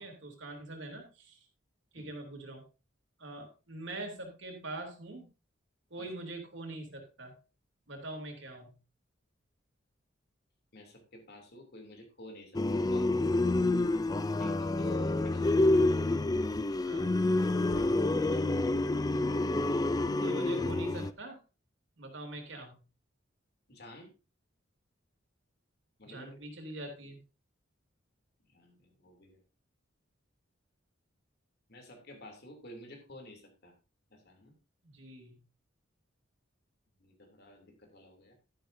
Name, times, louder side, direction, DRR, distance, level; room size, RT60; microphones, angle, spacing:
voice 1, 0.0-1.4 1.9-2.6 3.2-5.3 5.9-7.4 7.9-8.7 16.8-17.1 18.3-18.6 20.2-21.4 22.0-22.7 26.0-27.2 34.8-35.4, right 2 dB, 65° right, 3 dB, 3.0 m, -43 dB
voice 2, 10.7-13.1 14.4-17.3 23.7-24.1 26.0-26.4 28.5-29.4 31.7-33.7 34.1-34.5 37.0-38.3, left 1 dB, 55° left, 3 dB, 2.9 m, -51 dB
sound 1, 12.5-21.1, left 2 dB, 20° left, 0.4 m, -28 dB
12.5 x 10.5 x 2.7 m, 0.30 s
head